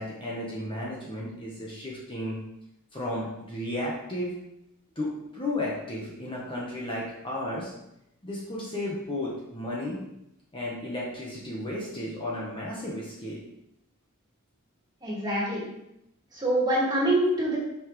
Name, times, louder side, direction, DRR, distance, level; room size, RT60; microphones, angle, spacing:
voice 1, 0.0-2.4 2.9-4.3 4.9-7.7 8.2-10.0 10.5-13.4, left 1 dB, 25° left, -5 dB, 1.3 m, -33 dB
voice 2, 15.0-15.6 16.3-17.6, right 1 dB, 20° right, -5 dB, 2.4 m, -25 dB
8.4 x 6.0 x 3.3 m, 0.84 s
head